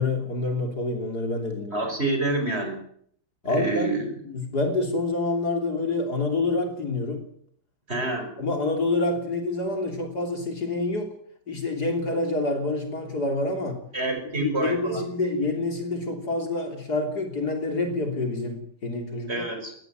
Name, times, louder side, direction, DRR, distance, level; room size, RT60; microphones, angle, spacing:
voice 1, 0.0-1.8 3.4-4.0 4.2-7.2 8.4-11.1 11.5-13.8 14.3-19.5, left 2 dB, 50° left, 4 dB, 3.7 m, -27 dB
voice 2, 1.7-2.8 3.4-4.1 7.9-8.3 13.9-15.1 19.3-19.8, right 2 dB, 30° right, 5 dB, 5.4 m, -27 dB
19.5 x 14.5 x 9.4 m, 0.65 s
omnidirectional pair, 2.2 m